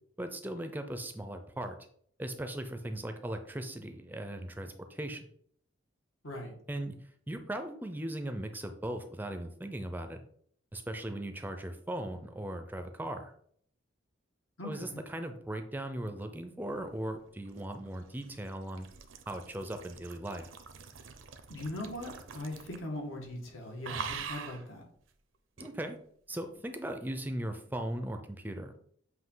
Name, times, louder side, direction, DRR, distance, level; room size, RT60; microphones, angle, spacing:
voice 1, 0.2-1.8 2.2-5.3 6.7-7.0 7.3-10.2 10.7-13.3 14.6-18.9 19.3-20.5 25.6-26.0 26.3-28.7, right 1 dB, 10° right, 6 dB, 0.5 m, -38 dB
voice 2, 14.6-15.0 21.5-24.8, left 1 dB, 85° left, 0 dB, 1.8 m, -40 dB
sound 1, 17.2-23.0 23.2-23.5 23.8-24.6 25.6-25.7, right 6 dB, 75° right, 0.7 m, -44 dB
8.0 x 2.8 x 5.5 m, 0.64 s
head